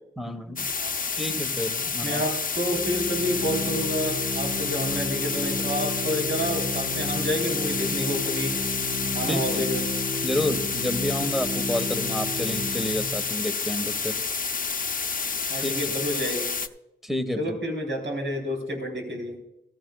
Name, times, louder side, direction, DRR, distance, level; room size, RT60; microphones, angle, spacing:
voice 1, 0.2-0.7 1.2-2.2 9.3-9.6 10.2-14.1 15.6-15.7 17.0-17.6, left 1 dB, ahead, 9 dB, 1.3 m, -30 dB
sound 1, 0.6-16.7, left 5 dB, 45° left, 0.7 m, -29 dB
voice 2, 2.0-8.6 9.1-9.8 15.5-16.5 17.4-19.4, equal, 70° right, 2 dB, 3.9 m, -29 dB
Organ, 2.5-13.3, equal, 30° right, 4.0 m, -33 dB
15.5 x 14.0 x 2.4 m, 0.86 s
cardioid pair, 70°, 20 cm